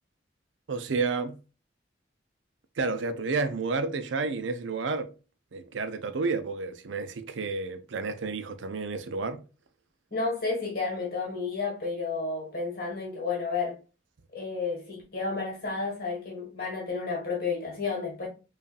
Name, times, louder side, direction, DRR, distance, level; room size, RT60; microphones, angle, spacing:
voice 1, 0.7-1.4 2.8-5.1 5.5-9.4, right 4 dB, 90° right, 0.5 m, -30 dB
voice 2, 10.1-13.8 14.3-18.3, left 4 dB, 55° left, 1.5 m, -31 dB
5.2 x 2.5 x 2.4 m
head